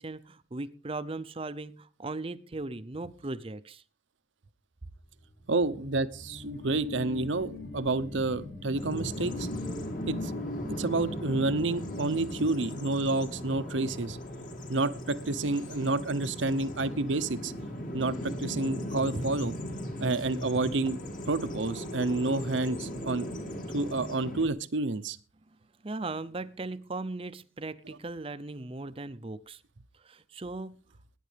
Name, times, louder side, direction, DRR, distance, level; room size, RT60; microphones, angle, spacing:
voice 1, 0.0-3.8 25.8-29.6 30.0-30.8, right 2 dB, 30° right, 14 dB, 0.6 m, -38 dB
sound 1, 5.3-14.5, left 2 dB, 70° left, 3.8 m, -41 dB
voice 2, 5.5-9.5 10.1-10.3 10.8-14.2 14.7-17.5 17.9-19.5 20.0-21.0 21.3-23.3 23.7-25.2, right 2 dB, 80° right, 14 dB, 0.8 m, -29 dB
Bird vocalization bird call bird song, 8.7-24.5, equal, 45° left, 2.1 m, -38 dB
20.5 x 10.5 x 3.4 m, 0.37 s
head